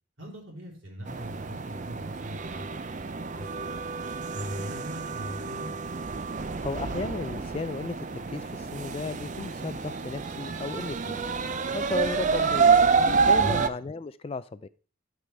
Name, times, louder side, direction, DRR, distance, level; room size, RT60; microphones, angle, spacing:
voice 1, 0.2-3.9 4.3-5.7 13.4-13.6, equal, 75° right, 3.5 m, -40 dB
sound 1, 1.1-13.7, right 5 dB, 35° right, 0.4 m, -28 dB
voice 2, 6.4-11.2 11.7-14.7, left 3 dB, 30° left, 0.3 m, -35 dB
13.0 x 4.9 x 3.3 m
head